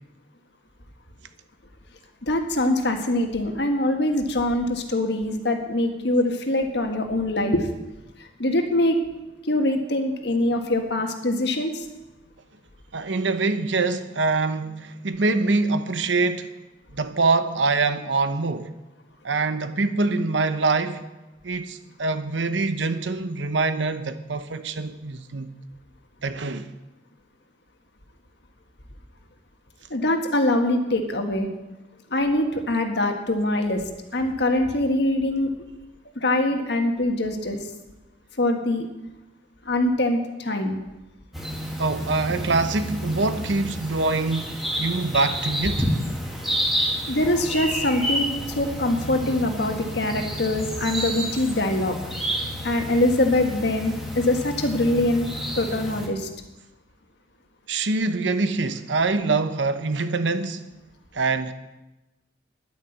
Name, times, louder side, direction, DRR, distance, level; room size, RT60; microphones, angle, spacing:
voice 1, 2.2-7.7 8.2-9.0 9.4-11.8 29.9-31.5 32.1-33.8 34.1-35.5 36.1-37.6 38.4-38.9 39.6-40.8 47.1-52.0 52.6-55.3 55.6-56.3, left 1 dB, 65° left, 1.6 m, -23 dB
voice 2, 12.9-16.5 16.9-18.7 19.2-21.1 21.4-25.5 26.2-26.7 41.8-45.9 57.7-60.7 61.1-61.5, right 3 dB, 90° right, 1.0 m, -24 dB
sound 1, 41.3-56.1, equal, ahead, 2.1 m, -30 dB
10.5 x 9.8 x 8.0 m
head